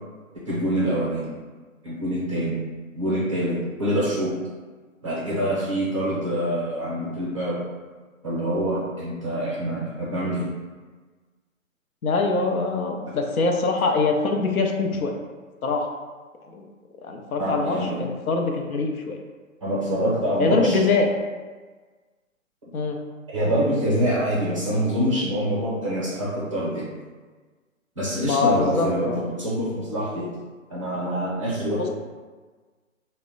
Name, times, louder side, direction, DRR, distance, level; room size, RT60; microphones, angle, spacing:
voice 1, 0.5-1.3 1.8-2.6 3.0-4.4 5.0-7.6 8.2-10.5 17.4-17.9 19.6-20.8 23.3-26.9 28.0-30.3 30.7-31.9, equal, 25° right, -7 dB, 0.5 m, -25 dB
voice 2, 12.0-15.1 15.6-15.9 16.5-16.7 17.0-19.2 20.4-21.1 22.7-23.0 28.2-29.2, left 3 dB, 85° left, 3 dB, 0.6 m, -23 dB
2.1 x 2.0 x 3.7 m, 1.4 s
hypercardioid pair, 150°, 41 cm